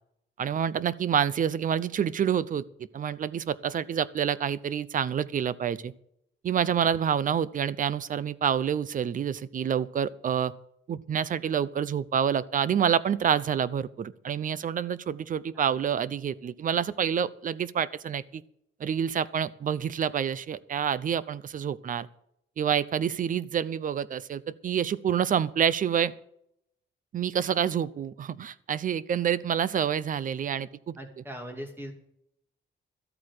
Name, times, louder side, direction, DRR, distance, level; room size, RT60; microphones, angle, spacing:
voice 1, 0.4-5.9 6.4-10.5 10.9-18.4 18.8-22.1 22.6-26.1 27.1-31.0, right 8 dB, 45° right, 18 dB, 0.7 m, -28 dB
voice 2, 31.0-31.9, equal, 10° right, 3 dB, 2.8 m, -40 dB
13.5 x 8.6 x 6.6 m, 0.73 s
cardioid pair, 140°, 19 cm